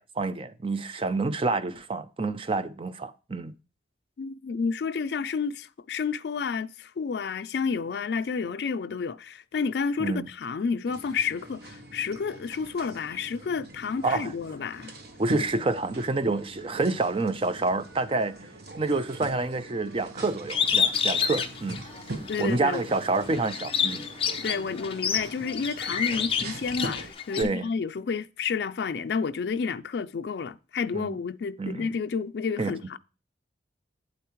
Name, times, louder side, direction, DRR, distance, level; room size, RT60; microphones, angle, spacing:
voice 1, 0.0-3.5 10.0-10.3 14.0-14.3 15.2-18.4 18.8-21.8 22.4-24.0 27.4-27.6 30.9-31.2 31.6-31.9 32.6-32.8, right 3 dB, 30° right, 0.5 m, -28 dB
voice 2, 4.2-14.9 22.3-22.8 24.4-33.0, left 5 dB, 65° left, 0.4 m, -30 dB
sound 1, 10.8-27.1, right 2 dB, 60° right, 1.1 m, -42 dB
Bird, 20.5-22.5 22.9-27.4, left 7 dB, 30° left, 0.7 m, -28 dB
8.5 x 8.2 x 3.0 m
head